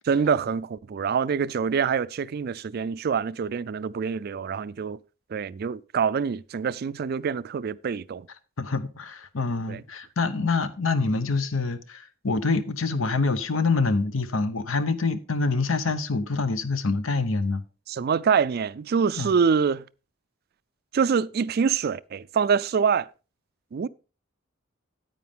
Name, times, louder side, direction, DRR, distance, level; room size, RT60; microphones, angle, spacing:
voice 1, 0.0-5.0 5.3-8.3 9.7-9.8 17.9-19.8 20.9-23.1 23.7-23.9, right 6 dB, 50° right, 0.3 m, -25 dB
voice 2, 8.6-17.6 19.2-19.4, left 3 dB, 80° left, 0.9 m, -26 dB
9.3 x 8.9 x 3.6 m
head